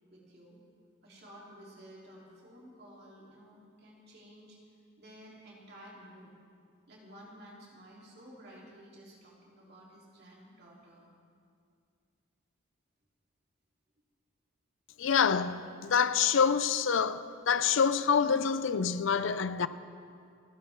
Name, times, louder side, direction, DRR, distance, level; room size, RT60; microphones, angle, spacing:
voice 1, 0.1-0.6 1.0-4.6 5.0-6.3 6.9-11.1, equal, 50° right, 3.2 m, -53 dB
voice 2, 15.0-19.7, left 6 dB, 65° left, 0.5 m, -27 dB
28.5 x 11.5 x 3.6 m
head